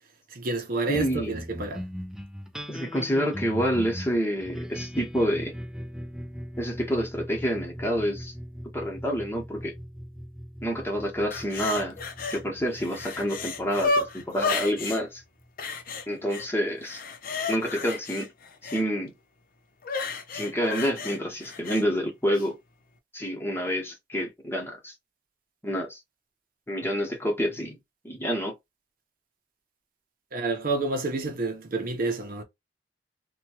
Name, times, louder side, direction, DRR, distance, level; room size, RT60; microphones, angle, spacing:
voice 1, 0.3-1.9 30.3-32.4, right 3 dB, 55° right, 0.7 m, -29 dB
voice 2, 0.9-1.3 2.7-5.5 6.6-8.3 8.7-9.7 10.6-12.0 12.3-15.2 16.1-17.0 17.5-18.3 18.6-19.1 20.3-22.6 23.1-24.9 25.6-26.0 26.7-27.8 28.0-28.5, equal, 15° left, 1.0 m, -28 dB
sound 1, 0.9-15.6, equal, 5° right, 0.4 m, -40 dB
Anguish groans female, 11.3-12.4 12.8-15.0 15.6-16.5 16.8-18.8 19.8-21.8 22.3-22.5, left 4 dB, 55° left, 0.5 m, -32 dB
2.9 x 2.3 x 2.8 m
head